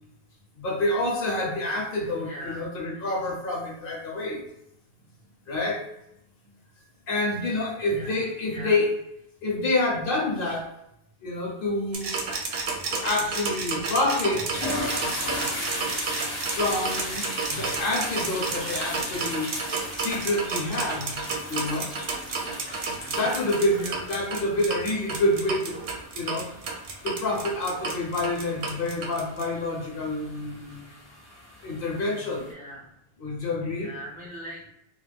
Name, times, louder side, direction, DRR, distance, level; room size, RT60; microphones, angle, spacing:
voice 1, 0.6-4.4 5.5-5.8 7.1-8.9 9.4-10.7 11.2-12.1 12.9-14.5 16.6-19.5 19.9-21.2 21.5-21.9 23.1-25.8 26.1-26.5 27.0-30.9 31.6-32.5 33.2-33.9, left 2 dB, 60° left, -2 dB, 0.9 m, -27 dB
voice 2, 2.2-2.6 7.9-8.1 8.5-8.7 23.1-23.4 23.8-24.0 32.5-32.9 33.8-34.6, equal, 10° right, -5 dB, 0.5 m, -40 dB
sound 1, 11.9-29.4, right 4 dB, 75° right, 0.8 m, -31 dB
sound 2, 13.7-13.9 14.3-32.5, left 1 dB, 30° left, 0.6 m, -38 dB
2.3 x 2.1 x 3.2 m, 0.80 s
omnidirectional pair, 1.0 m